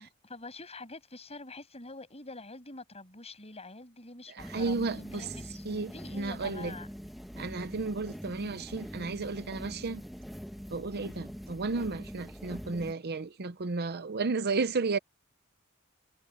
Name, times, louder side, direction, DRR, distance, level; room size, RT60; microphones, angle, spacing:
voice 1, 0.0-5.7 5.9-6.9, left 2 dB, 30° left, 7.9 m, -45 dB
sound 1, 4.4-12.9, equal, ahead, 1.3 m, -43 dB
voice 2, 4.4-5.2 5.7-6.7 7.4-10.0 10.7-15.0, right 3 dB, 50° right, 0.7 m, -33 dB
head